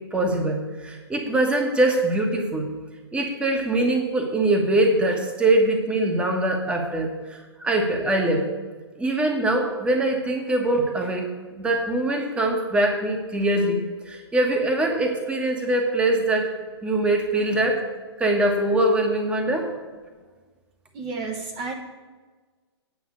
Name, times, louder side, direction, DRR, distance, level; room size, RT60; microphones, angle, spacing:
voice 1, 0.1-2.7 3.1-8.4 9.0-11.3 11.6-16.5 16.8-17.8 18.2-19.7, right 1 dB, 10° right, 3 dB, 1.3 m, -23 dB
voice 2, 20.9-21.7, right 4 dB, 30° right, 3 dB, 1.1 m, -31 dB
9.6 x 5.6 x 8.4 m, 1.4 s
hypercardioid pair, 130°, 14 cm